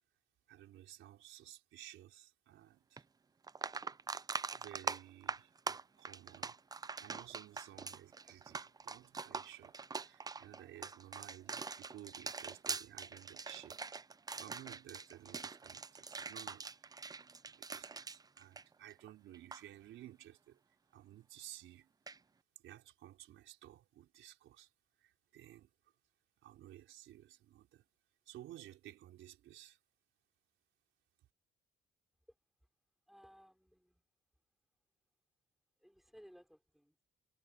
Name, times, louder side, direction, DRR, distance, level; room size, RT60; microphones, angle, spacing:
voice 1, 0.5-3.0 4.5-6.6 7.0-13.8 14.4-16.9 17.5-20.6 20.9-21.9 22.6-24.7 25.0-25.7 26.4-27.8 28.3-29.8, right 13 dB, 85° right, 5.0 m, -55 dB
sound 1, 3.0-3.1 3.4-19.1 19.3-19.6 22.1-22.2, right 4 dB, 20° right, 0.4 m, -43 dB
voice 2, 33.1-34.0 35.8-37.0, equal, ahead, 4.3 m, -61 dB
cardioid pair, 90°, 20 cm